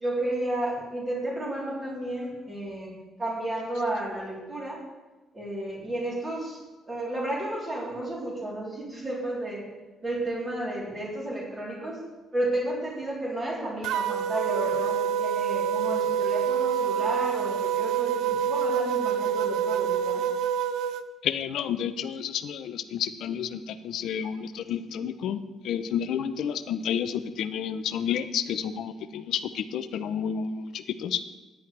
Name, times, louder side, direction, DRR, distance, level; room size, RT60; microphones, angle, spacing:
voice 1, 0.0-2.9 3.2-4.8 5.3-9.7 10.0-12.0 12.3-20.2, right 1 dB, 20° right, -5 dB, 3.5 m, -32 dB
sound 1, 13.8-21.0, right 8 dB, 85° right, 0.5 m, -27 dB
voice 2, 21.2-31.2, left 8 dB, 65° left, 11 dB, 0.6 m, -30 dB
15.5 x 10.0 x 3.3 m, 1.2 s
cardioid pair, 175°, 0 cm